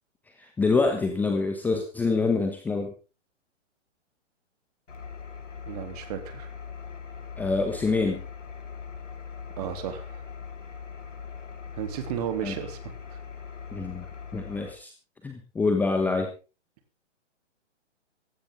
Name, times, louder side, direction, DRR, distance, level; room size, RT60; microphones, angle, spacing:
voice 1, 0.4-2.9 7.4-8.2 12.4-12.5 13.7-14.1 14.3-14.9 15.2-16.3, left 3 dB, 5° left, 4 dB, 1.1 m, -26 dB
Engine, 4.9-14.7, left 6 dB, 80° left, 5.2 m, -41 dB
voice 2, 5.7-6.5 9.6-10.2 11.7-13.2, right 9 dB, 30° right, 7 dB, 3.0 m, -34 dB
17.5 x 15.5 x 3.7 m, 0.34 s
hypercardioid pair, 150°, 37 cm